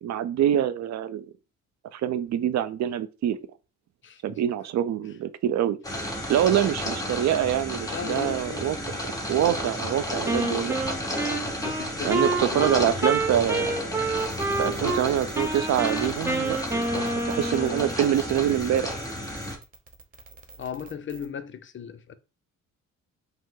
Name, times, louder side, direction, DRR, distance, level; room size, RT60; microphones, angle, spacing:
voice 1, 0.0-1.3 1.9-3.4 4.2-5.8 6.3-8.8 9.3-10.8 12.0-13.8 14.5-16.9 17.3-19.0, right 10 dB, 65° right, 0.5 m, -25 dB
voice 2, 4.0-4.4 5.0-5.2 6.3-6.5 7.9-8.7 11.6-12.8 16.9-17.2 17.6-17.8 20.6-22.1, left 7 dB, 40° left, 0.6 m, -37 dB
sound 1, 5.8-19.6, equal, 10° left, 1.2 m, -32 dB
Wind instrument woodwind instrument, 10.3-15.0 15.4-18.0, right 2 dB, 10° right, 0.8 m, -28 dB
sound 2, 14.2-21.3, right 4 dB, 30° right, 1.1 m, -48 dB
5.2 x 2.1 x 3.7 m
cardioid pair, 90°, 30 cm